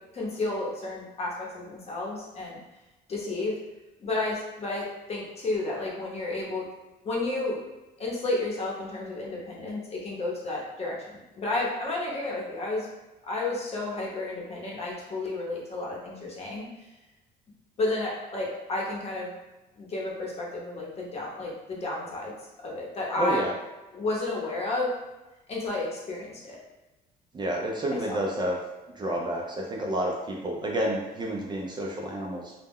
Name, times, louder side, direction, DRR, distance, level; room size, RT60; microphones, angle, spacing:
voice 1, 0.1-2.6 3.1-3.5 4.0-6.7 7.0-7.6 8.0-12.9 13.3-16.7 17.8-19.3 19.8-22.3 22.6-23.4 23.9-24.9 25.5-26.6 28.1-28.2, left 2 dB, 40° left, -3 dB, 0.8 m, -31 dB
voice 2, 23.1-23.5 27.3-28.6 28.9-32.5, right 1 dB, 25° right, -1 dB, 0.4 m, -30 dB
2.1 x 2.1 x 3.5 m, 1.1 s
cardioid pair, 110°, 17 cm